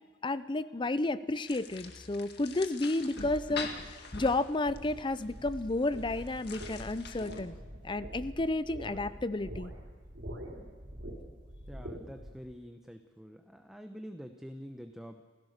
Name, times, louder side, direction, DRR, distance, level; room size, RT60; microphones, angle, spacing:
voice 1, 0.2-7.5 7.8-9.7, left 2 dB, 25° left, 14 dB, 0.5 m, -32 dB
sound 1, 1.5-7.4, left 4 dB, 55° left, 2.0 m, -44 dB
sound 2, 4.7-12.4, equal, 65° right, 3.9 m, -45 dB
voice 2, 11.7-15.2, equal, ahead, 5 dB, 0.9 m, -46 dB
28.0 x 16.5 x 6.6 m, 1.5 s
head